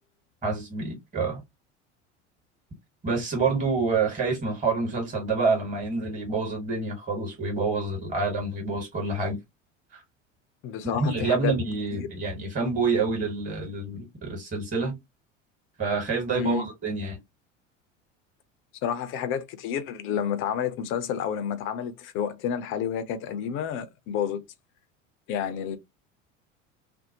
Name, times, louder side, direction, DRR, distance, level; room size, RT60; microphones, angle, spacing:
voice 1, 0.4-1.4 3.0-9.4 10.9-15.0 15.8-17.2, right 4 dB, 20° right, 1.4 m, -27 dB
voice 2, 10.6-11.5 11.9-12.1 16.4-16.7 18.8-24.4 25.3-25.8, left 8 dB, 35° left, 0.5 m, -30 dB
2.6 x 2.1 x 2.8 m
figure-of-eight pair, 70°, 38 cm